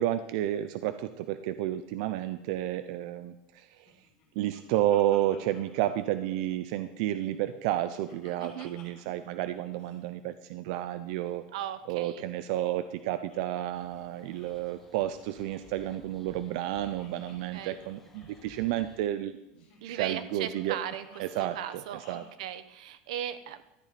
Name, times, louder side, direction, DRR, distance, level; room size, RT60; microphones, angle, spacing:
voice 1, 0.0-3.9 4.4-11.4 11.9-19.4 19.8-20.8 21.2-21.8 22.1-22.2, right 13 dB, 60° right, 10 dB, 0.5 m, -31 dB
Laughter, 3.8-6.8 7.1-9.2 9.5-9.6 9.8-10.0 11.3-13.6 13.9-14.0 14.3-14.6 15.7-18.5 19.6-22.3, left 4 dB, 45° left, 4.2 m, -58 dB
voice 2, 8.4-8.7 11.5-12.2 17.3-17.8 19.8-21.1 21.4-23.6, right 10 dB, 85° right, 12 dB, 0.8 m, -38 dB
sound 1, 13.7-19.0, left 2 dB, 5° left, 1.3 m, -57 dB
13.5 x 9.1 x 4.1 m, 0.92 s
supercardioid pair, 160°, 4 cm